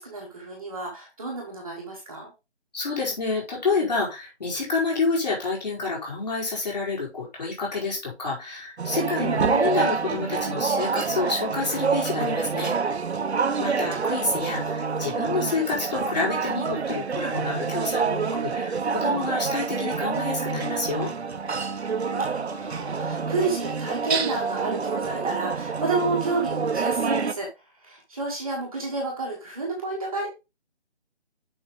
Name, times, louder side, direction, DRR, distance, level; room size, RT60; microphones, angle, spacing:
voice 1, 0.0-2.3 21.9-27.5 27.8-30.3, right 3 dB, 10° right, -9 dB, 1.3 m, -30 dB
voice 2, 2.7-12.7 13.6-21.1, left 3 dB, 40° left, -3 dB, 4.7 m, -28 dB
sound 1, 8.8-27.3, right 5 dB, 75° right, 0.8 m, -27 dB
7.9 x 5.6 x 3.8 m, 0.26 s
figure-of-eight pair, 175°, 34 cm